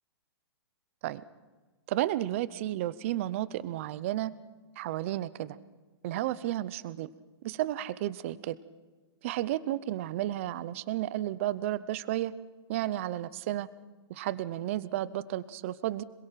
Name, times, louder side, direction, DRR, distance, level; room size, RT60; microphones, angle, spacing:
voice 1, 1.9-4.3 4.8-5.6 6.0-7.1 7.4-8.6 9.2-12.3 12.7-13.7 14.1-16.0, right 14 dB, 30° right, 17 dB, 0.6 m, -32 dB
26.0 x 22.5 x 5.8 m, 1.3 s
hypercardioid pair, 170°, 14 cm